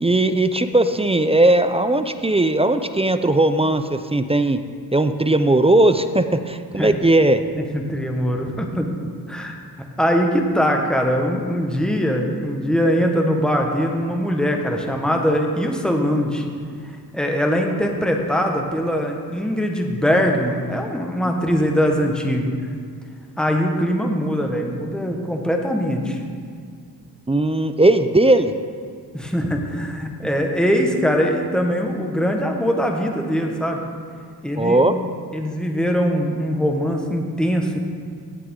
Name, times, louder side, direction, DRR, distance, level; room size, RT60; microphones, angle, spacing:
voice 1, 0.0-4.6 4.9-7.4 27.3-28.5 34.6-34.9, right 2 dB, 15° right, 9 dB, 0.4 m, -18 dB
voice 2, 7.5-8.9 9.3-9.6 10.0-16.5 16.8-22.5 23.4-26.2 29.1-33.8 34.4-34.8 35.3-37.8, equal, ahead, 2 dB, 1.3 m, -22 dB
17.0 x 6.7 x 3.7 m, 2.1 s
cardioid pair, 75°, 40 cm